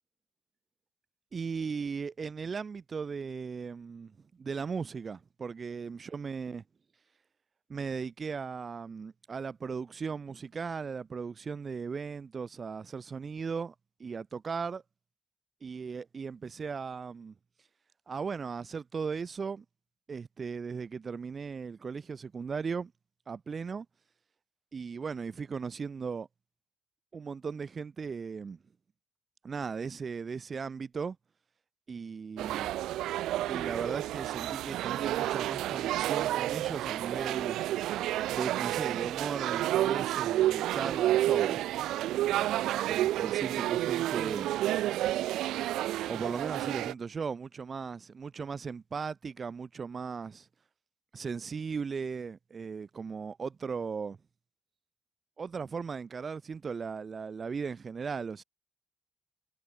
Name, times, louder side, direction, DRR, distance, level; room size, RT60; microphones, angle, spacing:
voice 1, 1.3-6.6 7.7-13.7 14.0-14.8 15.6-17.3 18.1-19.7 20.1-22.9 23.3-23.9 24.7-26.3 27.1-28.6 29.4-31.2 31.9-32.7 33.5-37.6 38.2-41.6 42.4-44.6 46.1-50.5 51.1-54.2 55.4-58.4, right 5 dB, 40° right, 6.9 m, -37 dB
sound 1, 32.4-46.9, right 14 dB, 85° right, 3.8 m, -30 dB
cardioid pair, 90°, 0 cm